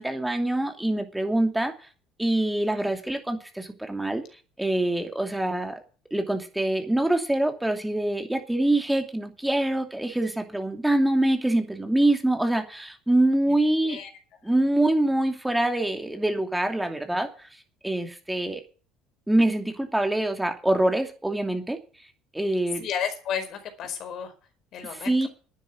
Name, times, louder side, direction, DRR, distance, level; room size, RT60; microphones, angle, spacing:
voice 1, 0.0-1.9 2.2-4.2 4.6-5.7 6.1-14.0 14.4-17.5 17.8-18.6 19.3-21.8 22.3-22.9 24.8-25.3, right 1 dB, 5° right, 5 dB, 2.7 m, -25 dB
voice 2, 22.8-24.3 24.7-25.3, left 8 dB, 55° left, 7 dB, 4.8 m, -32 dB
11.5 x 10.0 x 8.3 m, 0.39 s
supercardioid pair, 105°, 0 cm